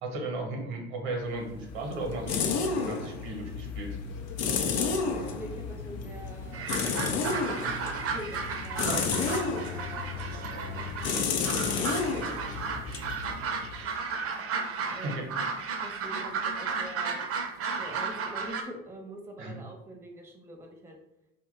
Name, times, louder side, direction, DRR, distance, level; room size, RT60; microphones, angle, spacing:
voice 1, 0.0-2.4 2.7-4.0 8.8-9.2 15.0-15.3 19.4-19.6, right 2 dB, 80° right, 2 dB, 0.8 m, -35 dB
sound 1, 1.3-14.0, left 5 dB, 55° left, 0.5 m, -32 dB
voice 2, 4.9-8.9 9.7-12.7 13.6-13.9 14.9-15.3 15.8-17.3 17.8-21.0, right 1 dB, 10° right, 2 dB, 0.7 m, -46 dB
sound 2, 6.5-18.6, right 5 dB, 50° right, 0.6 m, -34 dB
2.8 x 2.1 x 3.6 m, 0.86 s
hypercardioid pair, 65°, 31 cm